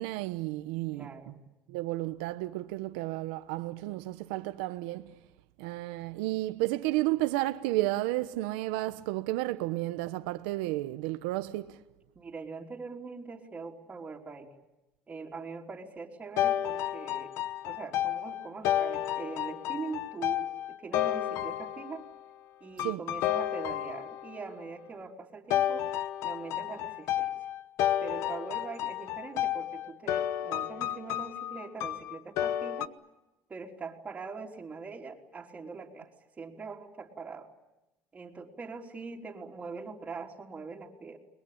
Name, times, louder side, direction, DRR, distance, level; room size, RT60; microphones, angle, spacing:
voice 1, 0.0-1.3 1.7-5.2 5.6-11.8 22.8-23.0, right 18 dB, 85° right, 1.1 m, -32 dB
voice 2, 0.9-1.4 12.2-14.5 15.1-17.3 17.6-22.0 22.6-25.9 26.2-27.4 28.0-32.9 33.5-37.5 38.1-41.2, right 4 dB, 25° right, 3.8 m, -42 dB
sound 1, 16.4-22.1 22.8-24.4 25.5-32.9, left 12 dB, 65° left, 1.1 m, -31 dB
30.0 x 21.5 x 8.8 m
supercardioid pair, 105°, 5 cm